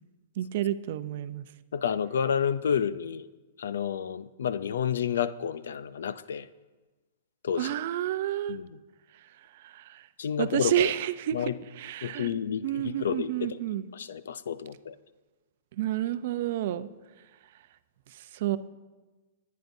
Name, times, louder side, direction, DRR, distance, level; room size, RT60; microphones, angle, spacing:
voice 1, 0.4-1.4 7.6-8.6 9.5-10.1 10.4-11.4 11.8-12.3 12.6-13.9 15.8-16.9 18.1-18.6, right 12 dB, 55° right, 13 dB, 0.5 m, -30 dB
voice 2, 1.7-3.3 3.6-6.5 7.4-7.7 8.5-8.7 10.2-10.9 11.3-11.6 12.0-13.6 13.9-14.9, left 8 dB, 85° left, 16 dB, 0.5 m, -30 dB
23.0 x 9.4 x 2.7 m, 1.2 s
hypercardioid pair, 150°, 0 cm